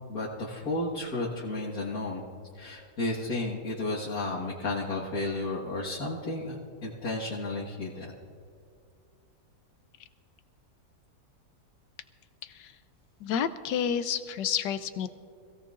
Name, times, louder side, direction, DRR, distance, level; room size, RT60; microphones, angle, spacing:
voice 1, 0.1-2.2 2.5-8.1, left 2 dB, 60° left, -6 dB, 2.1 m, -33 dB
voice 2, 12.4-12.8 13.2-15.1, left 8 dB, 85° left, 12 dB, 1.3 m, -30 dB
26.0 x 16.5 x 2.5 m, 2.3 s
omnidirectional pair, 1.8 m